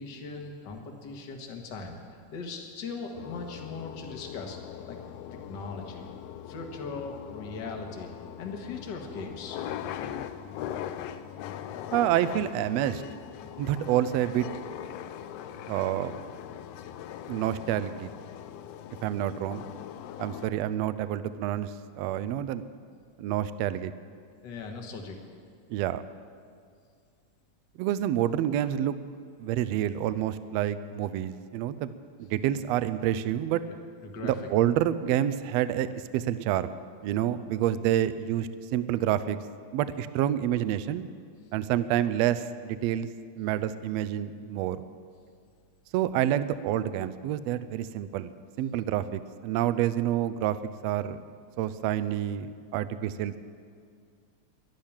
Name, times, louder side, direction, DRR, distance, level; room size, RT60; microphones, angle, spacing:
voice 1, 0.0-2.0 2.3-4.6 4.9-5.0 5.5-6.1 6.5-8.1 8.4-9.6 24.4-25.2 33.7-34.3, left 4 dB, 45° left, 3 dB, 1.7 m, -39 dB
sound 1, 3.1-20.5, left 10 dB, 80° left, 1.4 m, -41 dB
voice 2, 11.9-13.0 13.6-14.5 15.7-16.2 17.3-18.1 19.0-19.6 20.2-22.6 23.2-23.9 25.7-26.0 27.8-29.0 29.4-31.9 32.2-33.6 34.2-36.8 37.0-39.4 39.7-41.1 41.5-43.1 43.4-44.8 45.9-48.3 48.6-50.6 50.8-51.2 51.6-53.4, right 11 dB, 80° right, 13 dB, 1.6 m, -28 dB
12.0 x 11.5 x 8.7 m, 2.1 s
omnidirectional pair, 3.4 m